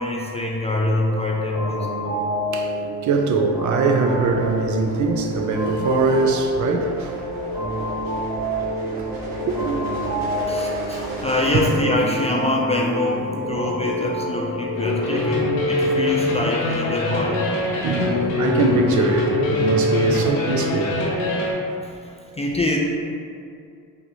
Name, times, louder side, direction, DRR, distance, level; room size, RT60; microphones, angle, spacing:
voice 1, 0.0-1.9 10.5-17.5 21.9-22.8, left 2 dB, 15° left, -2 dB, 0.3 m, -24 dB
sound 1, 0.8-15.3, equal, 15° right, 1.1 m, -28 dB
voice 2, 3.0-7.3 9.0-10.7 17.8-20.9, right 3 dB, 45° right, 3 dB, 0.5 m, -22 dB
sound 2, 4.0-11.7, right 1 dB, 70° right, 1.4 m, -36 dB
sound 3, 14.8-21.5, left 2 dB, 85° left, 0.8 m, -23 dB
5.6 x 2.1 x 2.6 m, 2.4 s
supercardioid pair, 60°, 42 cm